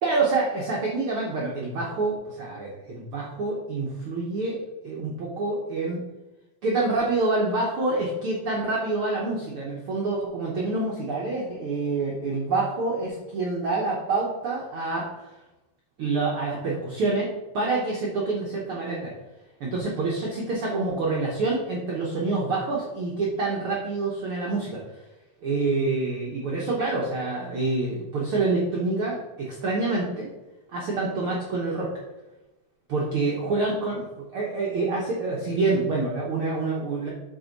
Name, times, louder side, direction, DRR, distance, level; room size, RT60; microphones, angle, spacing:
voice 1, 0.0-4.6 4.8-6.0 6.6-15.3 16.0-17.3 17.5-19.1 19.6-24.8 25.4-30.3 30.7-31.9 32.9-37.1, right 3 dB, 85° right, -3 dB, 1.2 m, -27 dB
7.6 x 3.8 x 5.3 m, 1.0 s
omnidirectional pair, 4.0 m